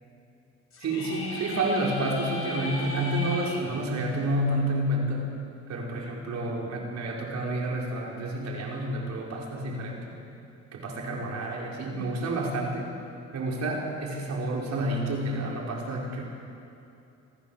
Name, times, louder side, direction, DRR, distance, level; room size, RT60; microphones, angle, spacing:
sound 1, 0.7-3.6, left 2 dB, 50° left, 5.4 m, -36 dB
voice 1, 0.8-5.3 5.7-10.1 10.7-12.9 13.3-16.2, right 1 dB, 65° right, -2 dB, 5.6 m, -29 dB
27.5 x 16.0 x 7.5 m, 2.7 s
cardioid pair, 90°, 30 cm